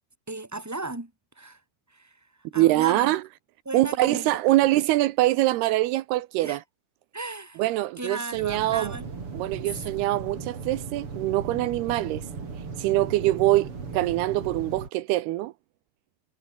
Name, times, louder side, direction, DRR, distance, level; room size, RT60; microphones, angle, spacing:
voice 1, 0.3-1.6 1.9-3.1 3.6-4.4 6.4-6.6 7.1-7.6 8.0-9.1, right 2 dB, 5° right, 1.5 m, -36 dB
voice 2, 2.6-3.2 3.7-6.6 7.6-9.0 9.3-12.2 12.8-15.5, right 17 dB, 85° right, 2.9 m, -24 dB
sound 1, 8.3-14.9, right 5 dB, 35° right, 4.3 m, -37 dB
omnidirectional pair, 4.6 m